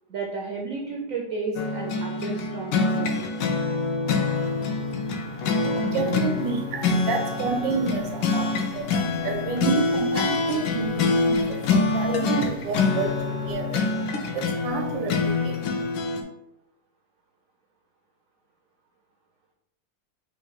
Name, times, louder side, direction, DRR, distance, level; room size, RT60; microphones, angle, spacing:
voice 1, 0.1-3.2, right 4 dB, 65° right, 0 dB, 0.9 m, -32 dB
sound 1, 1.6-16.2, left 4 dB, 80° left, 1.3 m, -25 dB
voice 2, 4.4-15.9, right 4 dB, 90° right, 3 dB, 1.5 m, -30 dB
sound 2, 12.1-12.6 14.1-14.5, left 4 dB, 65° left, 0.9 m, -35 dB
4.9 x 2.6 x 4.0 m, 0.83 s
omnidirectional pair, 1.9 m